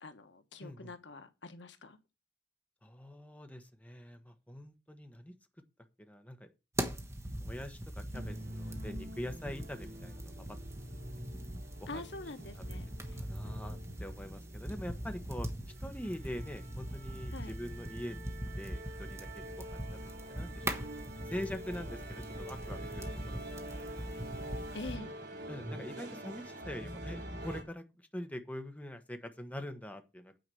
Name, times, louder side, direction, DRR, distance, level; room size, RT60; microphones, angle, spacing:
voice 1, 0.0-2.0 11.9-13.2 17.3-17.5 24.7-25.1, left 2 dB, 80° left, 1.3 m, -45 dB
voice 2, 0.6-0.9 2.8-5.3 6.0-6.5 7.4-10.3 11.8-12.0 13.2-15.5 15.8-18.2 18.6-20.9 21.3-24.0 25.5-30.4, left 1 dB, 10° left, 1.2 m, -44 dB
sound 1, 6.7-25.0, right 1 dB, 15° right, 1.3 m, -42 dB
sound 2, 8.1-27.6, right 1 dB, 65° right, 3.6 m, -46 dB
9.2 x 4.9 x 7.7 m
head